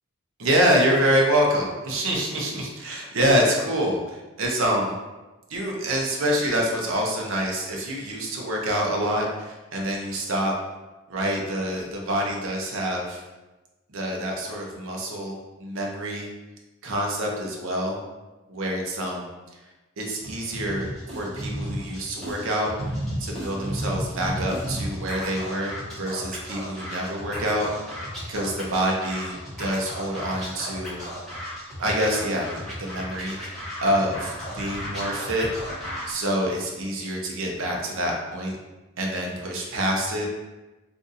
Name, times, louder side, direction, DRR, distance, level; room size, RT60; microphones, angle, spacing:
voice 1, 0.4-5.0 5.5-10.5 11.1-13.2 13.9-16.3 16.8-18.0 18.5-19.3 20.0-22.7 23.2-31.0 31.8-35.5 36.1-38.5 39.0-40.3, equal, 65° right, -1 dB, 0.7 m, -26 dB
Scratching (performance technique), 20.2-36.1, equal, ahead, 1.0 m, -34 dB
2.5 x 2.5 x 4.0 m, 1.1 s
head